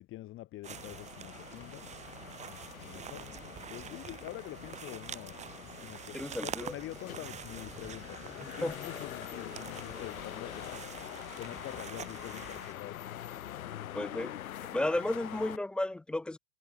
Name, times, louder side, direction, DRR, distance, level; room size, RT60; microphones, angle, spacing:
voice 1, 0.0-13.1, left 16 dB, 30° left, 4.6 m, -46 dB
sound 1, 0.6-12.7, right 8 dB, 15° right, 2.0 m, -46 dB
sound 2, 0.7-15.6, left 11 dB, 85° left, 1.5 m, -45 dB
voice 2, 6.1-6.7 8.6-8.7 13.9-14.4 14.7-16.4, left 1 dB, 5° left, 0.4 m, -33 dB
hypercardioid pair, 140°, 41 cm